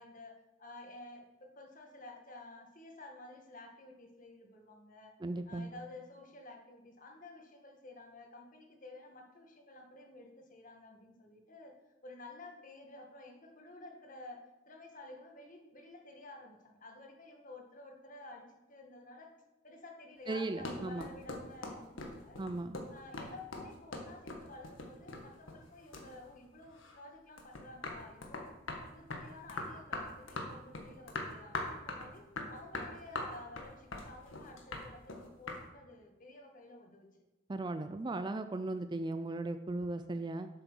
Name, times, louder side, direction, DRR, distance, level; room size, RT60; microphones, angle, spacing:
voice 1, 0.0-5.2 5.5-11.7 12.0-19.3 19.6-22.4 22.9-28.5 28.9-37.1, left 2 dB, 45° left, 2 dB, 1.7 m, -52 dB
voice 2, 5.2-5.7 20.3-21.1 22.4-22.8 37.5-40.5, right 2 dB, 25° right, 10 dB, 0.4 m, -37 dB
sound 1, 20.3-25.7 25.9-27.0 27.4-35.6, left 2 dB, 85° left, 1.7 m, -41 dB
8.1 x 7.7 x 6.1 m, 1.0 s
head